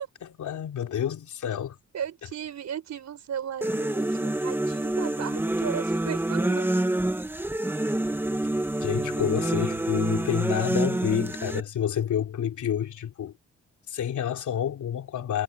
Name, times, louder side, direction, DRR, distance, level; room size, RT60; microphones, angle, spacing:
voice 1, 0.2-1.8 8.8-13.3 13.9-15.4, left 9 dB, 75° left, 3.4 m, -29 dB
voice 2, 1.9-6.7, right 9 dB, 65° right, 5.0 m, -36 dB
sound 1, 3.6-11.6, right 1 dB, 5° right, 0.9 m, -27 dB
wide cardioid pair, 155°, 30 cm